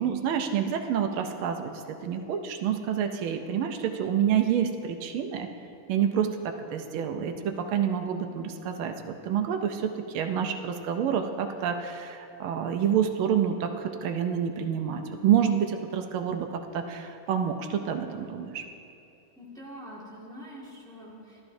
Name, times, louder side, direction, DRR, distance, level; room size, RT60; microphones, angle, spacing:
voice 1, 0.0-1.7 2.0-5.5 5.9-18.6, right 8 dB, 85° right, 5 dB, 1.5 m, -28 dB
voice 2, 19.4-21.4, equal, ahead, -6 dB, 1.5 m, -44 dB
13.0 x 12.0 x 2.6 m, 2.7 s
omnidirectional pair, 2.3 m